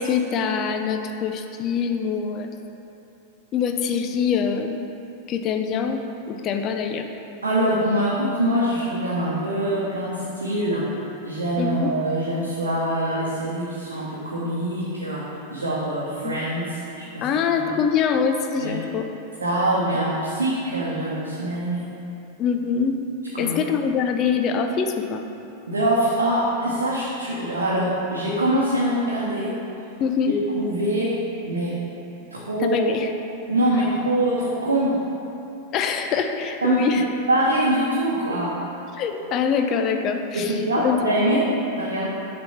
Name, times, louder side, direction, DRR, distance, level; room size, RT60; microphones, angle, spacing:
voice 1, 0.0-2.5 3.5-4.8 5.3-7.1 11.6-11.9 16.2-16.5 17.2-19.1 22.4-23.0 23.4-25.2 30.0-30.4 32.6-33.1 35.7-37.0 39.0-40.5 40.8-41.5, left 6 dB, 35° left, 6 dB, 0.5 m, -24 dB
voice 2, 7.4-10.9 11.2-17.3 17.6-17.7 18.6-18.8 19.4-21.9 23.3-23.6 25.7-29.6 30.3-31.2 31.5-31.8 32.3-32.9 33.5-35.0 36.6-37.0 37.3-38.6 40.3-42.1, right 1 dB, 70° right, -6 dB, 0.9 m, -24 dB
6.9 x 3.4 x 5.7 m, 2.8 s
figure-of-eight pair, 90°, 0 cm